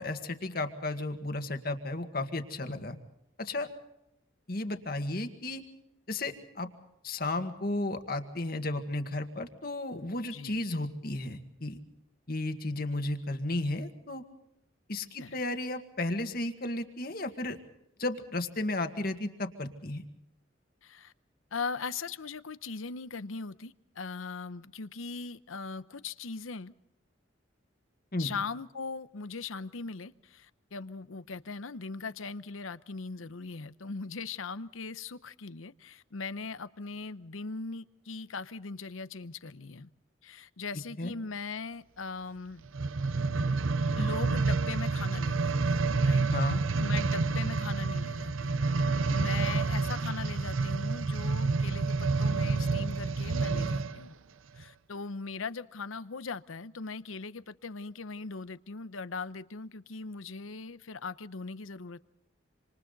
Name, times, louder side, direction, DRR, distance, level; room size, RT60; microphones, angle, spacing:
voice 1, 0.0-3.0 3.4-3.7 4.5-5.6 6.1-6.7 7.0-11.8 12.3-14.2 14.9-17.6 18.0-20.0 28.1-28.3 41.0-41.1 46.3-46.6, left 2 dB, 45° left, 1.9 m, -33 dB
voice 2, 10.3-10.6 15.2-15.4 20.8-21.1 21.5-26.7 28.2-39.9 40.2-42.7 44.0-46.3 46.8-48.5 49.1-54.1 54.5-62.0, left 4 dB, 85° left, 0.8 m, -39 dB
sound 1, 42.7-54.0 54.6-54.7, right 3 dB, 80° right, 0.7 m, -28 dB
27.0 x 27.0 x 4.0 m
head